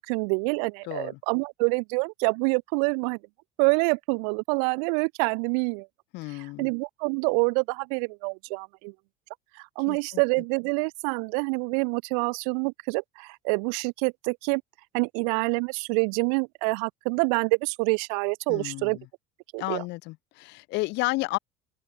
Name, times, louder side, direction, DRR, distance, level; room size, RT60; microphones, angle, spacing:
voice 1, 0.0-3.2 3.6-5.9 6.6-8.9 9.8-14.6 14.9-19.0 19.5-19.8, right 40 dB or more, 80° right, 0.5 m, -26 dB
voice 2, 0.8-1.2 6.1-6.7 9.9-10.2 18.5-19.1 19.6-21.4, left 22 dB, 65° left, 2.7 m, -32 dB
open air
supercardioid pair, 115°, 19 cm